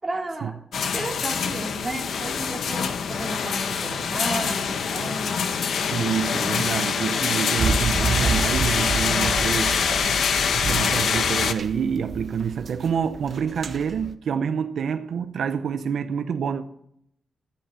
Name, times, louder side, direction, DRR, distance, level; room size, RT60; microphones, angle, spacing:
voice 1, 0.0-5.4 9.7-10.2, right 2 dB, 20° right, 3.1 m, -33 dB
sound 1, 0.7-11.5, left 6 dB, 75° left, 1.2 m, -25 dB
voice 2, 5.9-9.8 10.5-16.6, right 7 dB, 75° right, 0.7 m, -27 dB
sound 2, 7.6-14.1, right 4 dB, 50° right, 1.2 m, -30 dB
14.5 x 10.5 x 6.9 m
wide cardioid pair, 170°, 0 cm